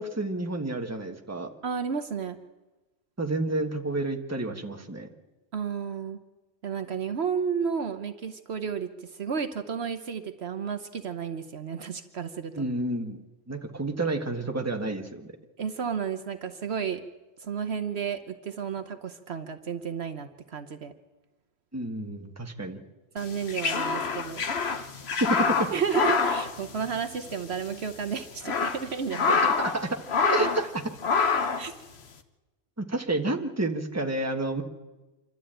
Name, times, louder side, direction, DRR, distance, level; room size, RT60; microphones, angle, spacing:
voice 1, 0.0-1.5 3.2-5.1 12.5-13.2 13.5-15.3 21.7-22.8 25.2-25.7 29.3-29.9 30.3-30.7 32.8-34.6, right 2 dB, 15° right, 4 dB, 1.3 m, -30 dB
voice 2, 1.6-2.4 5.5-6.2 6.6-12.7 15.6-17.0 17.4-20.9 23.1-24.5 25.7-29.4 30.2-30.5 31.6-31.7, right 6 dB, 65° right, 9 dB, 1.1 m, -32 dB
sound 1, 23.2-27.3 27.6-27.7 28.2-29.8 30.1-30.7 31.0-31.7, left 5 dB, 60° left, 1.4 m, -26 dB
26.5 x 12.5 x 8.8 m, 1.1 s
omnidirectional pair, 1.2 m